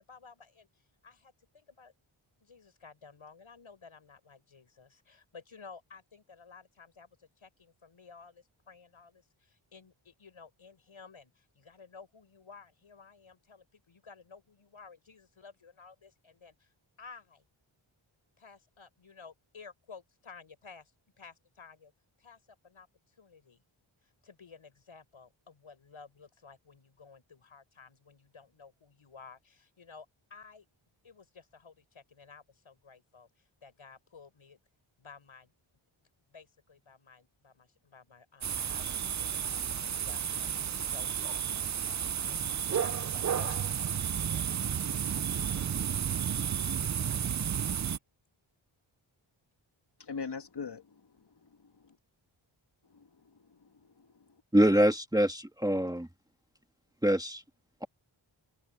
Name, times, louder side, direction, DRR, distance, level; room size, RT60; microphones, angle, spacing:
voice 1, 0.0-1.9 2.4-16.7 17.0-17.4 18.4-20.9 21.2-21.9 22.2-23.6 24.0-30.7 31.0-34.6 35.0-35.5 36.0-39.4 39.8-45.2 45.5-46.1 47.1-47.4, left 5 dB, 75° left, 7.5 m, -54 dB
sound 1, 38.4-48.0, right 8 dB, 35° right, 0.5 m, -32 dB
voice 2, 50.0-52.0 52.8-54.4, left 5 dB, 55° left, 1.6 m, -44 dB
voice 3, 54.5-56.1 57.0-57.4, equal, 10° right, 1.6 m, -25 dB
cardioid pair, 55°, 50 cm